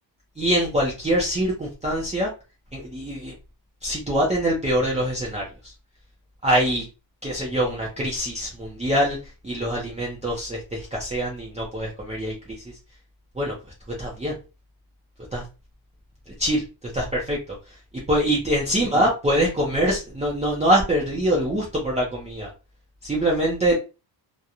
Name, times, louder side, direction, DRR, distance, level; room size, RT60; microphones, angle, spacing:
voice 1, 0.4-2.3 2.7-3.3 3.8-5.7 6.4-6.8 7.2-9.2 9.4-12.3 13.4-13.5 14.0-14.3 15.3-15.4 16.4-16.6 16.9-17.4 17.9-22.5 23.0-23.8, right 1 dB, 15° right, -4 dB, 0.5 m, -24 dB
2.9 x 2.1 x 2.4 m, 0.30 s
wide cardioid pair, 160°, 46 cm